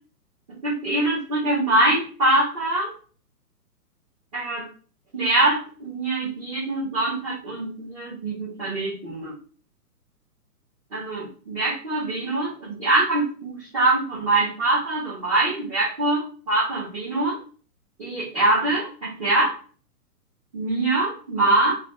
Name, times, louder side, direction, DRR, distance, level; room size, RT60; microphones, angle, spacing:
voice 1, 0.6-2.9 4.3-4.7 5.1-9.3 10.9-17.4 18.0-19.5 20.5-21.7, right 2 dB, 25° right, -8 dB, 0.6 m, -23 dB
2.4 x 2.2 x 3.0 m, 0.42 s
hypercardioid pair, 130°, 48 cm